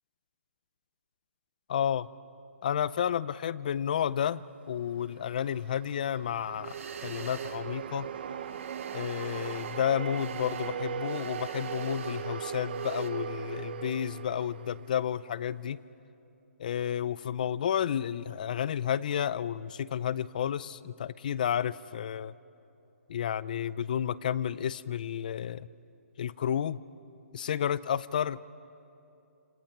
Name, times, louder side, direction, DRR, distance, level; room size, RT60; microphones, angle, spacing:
voice 1, 1.7-2.1 2.6-6.7 7.0-8.1 8.9-15.8 16.6-22.3 23.1-25.7 26.2-26.8 27.3-28.4, left 9 dB, 35° left, 19 dB, 0.5 m, -31 dB
sound 1, 5.0-15.4, right 8 dB, 40° right, 0.8 m, -38 dB
sound 2, 6.6-13.1, right 5 dB, 65° right, 2.0 m, -50 dB
29.0 x 28.0 x 6.0 m, 2.8 s
hypercardioid pair, 170°, 8 cm